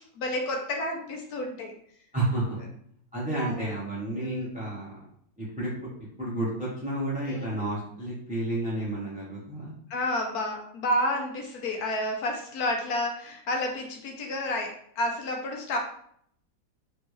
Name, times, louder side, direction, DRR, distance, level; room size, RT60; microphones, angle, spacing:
voice 1, 0.2-1.7 3.3-3.7 4.2-4.5 7.2-7.5 9.9-15.8, left 1 dB, 65° left, 2 dB, 1.1 m, -30 dB
voice 2, 2.1-2.6 3.1-5.0 5.4-5.7 6.2-9.7, right 1 dB, 5° right, -7 dB, 0.8 m, -31 dB
4.4 x 3.2 x 3.3 m, 0.66 s
omnidirectional pair, 2.0 m